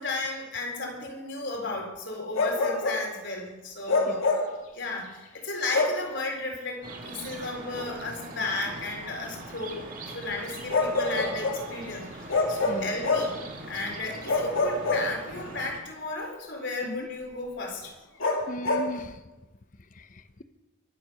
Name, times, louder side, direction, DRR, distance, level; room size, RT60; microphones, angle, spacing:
voice 1, 0.0-4.3 4.7-12.1 12.5-13.4 13.7-17.9, left 2 dB, 60° left, 1 dB, 4.1 m, -34 dB
Bark, 2.3-3.1 3.9-4.6 5.7-6.1 7.7-7.9 10.7-11.7 12.3-13.4 14.3-15.5 18.2-18.9, left 3 dB, 85° left, 2.7 m, -26 dB
sound 1, 6.8-15.8, right 2 dB, 40° right, 2.3 m, -42 dB
voice 2, 18.5-19.2 19.9-20.4, left 1 dB, 40° left, 11 dB, 0.8 m, -37 dB
23.0 x 7.7 x 6.7 m, 1.0 s
head